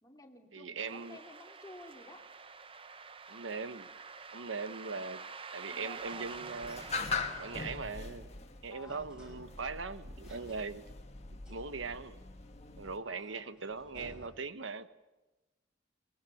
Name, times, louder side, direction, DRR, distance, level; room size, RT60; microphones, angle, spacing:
voice 1, 0.0-2.2 5.6-6.3 8.7-9.1 13.1-13.2, left 2 dB, 20° left, 2.6 m, -53 dB
voice 2, 0.5-1.2 3.3-3.9 4.3-5.2 5.5-6.8 7.4-8.3 8.6-10.8 11.5-12.2 12.8-14.9, right 4 dB, 85° right, 1.1 m, -40 dB
sound 1, 0.8-7.8, right 5 dB, 30° right, 0.7 m, -48 dB
sound 2, 1.7-14.3, equal, 5° right, 5.3 m, -57 dB
sound 3, 6.6-13.0, left 4 dB, 35° left, 1.6 m, -41 dB
23.0 x 20.5 x 7.9 m
head